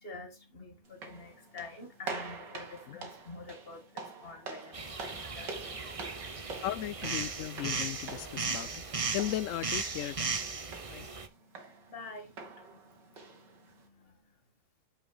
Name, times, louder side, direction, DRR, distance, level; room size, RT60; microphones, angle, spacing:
voice 1, 0.0-6.8 7.2-7.9 8.4-9.3 10.1-14.4, left 3 dB, 30° left, 2.3 m, -50 dB
sound 1, 0.8-13.9, right 4 dB, 70° right, 2.6 m, -46 dB
sound 2, 4.7-11.3, right 4 dB, 40° right, 0.4 m, -37 dB
voice 2, 6.6-8.7 9.1-10.2 10.9-11.1, left 13 dB, 85° left, 0.7 m, -36 dB
9.1 x 6.4 x 2.4 m
omnidirectional pair, 2.0 m